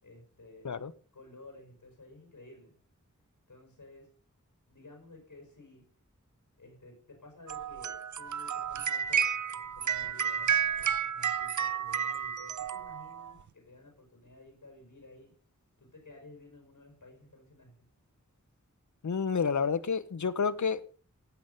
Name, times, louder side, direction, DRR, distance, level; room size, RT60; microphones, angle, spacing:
voice 1, 0.0-2.8 3.5-4.1 4.7-5.8 6.6-15.3 15.8-17.9, left 2 dB, 85° left, 5.5 m, -54 dB
sound 1, 7.5-13.3, right 8 dB, 70° right, 0.5 m, -31 dB
voice 2, 19.0-20.9, left 6 dB, 70° left, 0.8 m, -30 dB
17.5 x 8.1 x 5.6 m
wide cardioid pair, 50°, 31 cm